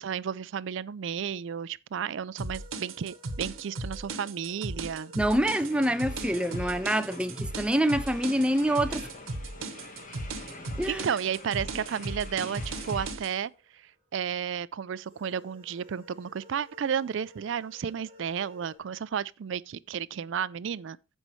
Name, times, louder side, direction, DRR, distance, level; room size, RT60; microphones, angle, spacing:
voice 1, 0.0-5.1 10.9-21.0, right 7 dB, 65° right, 0.4 m, -33 dB
sound 1, 2.4-13.3, right 2 dB, 85° right, 1.1 m, -36 dB
sound 2, 2.5-14.2 15.0-18.8, left 1 dB, 30° right, 3.9 m, -56 dB
voice 2, 5.2-9.1 10.8-11.0, right 1 dB, 5° right, 0.5 m, -26 dB
sound 3, 5.3-13.1, left 2 dB, 40° left, 1.4 m, -46 dB
15.0 x 5.4 x 3.1 m
head